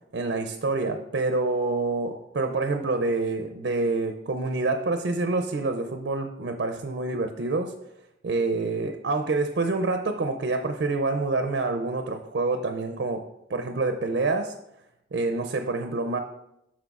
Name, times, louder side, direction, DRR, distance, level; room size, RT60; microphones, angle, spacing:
voice 1, 0.1-7.7 8.2-14.6 15.1-16.2, right 3 dB, 70° right, 7 dB, 0.5 m, -27 dB
9.1 x 6.3 x 2.4 m, 0.83 s
head